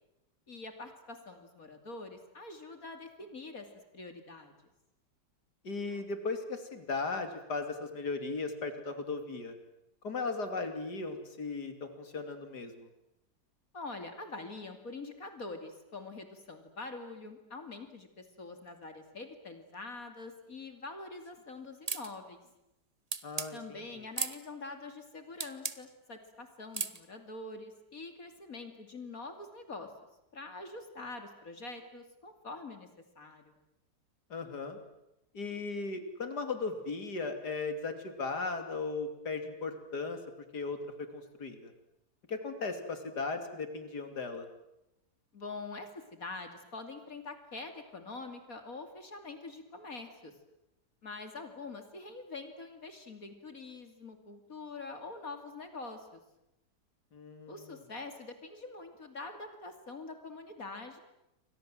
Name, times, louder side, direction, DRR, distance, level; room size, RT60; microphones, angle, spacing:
voice 1, 0.5-3.7 3.9-4.5 13.7-22.4 23.5-29.9 30.3-32.9 33.2-33.6 45.3-50.3 51.0-56.2 57.5-61.0, left 3 dB, 55° left, 7 dB, 3.1 m, -45 dB
voice 2, 5.6-9.6 10.0-12.9 23.2-23.9 34.3-34.8 35.3-40.2 40.5-41.7 42.3-44.5 57.1-57.8, left 4 dB, 70° left, 8 dB, 3.5 m, -37 dB
sound 1, 21.9-22.1 23.1-23.5 24.2-24.4 25.4-25.8 26.7-27.0, right 4 dB, 25° right, 1.1 m, -34 dB
29.5 x 24.5 x 7.7 m, 0.89 s
omnidirectional pair, 1.8 m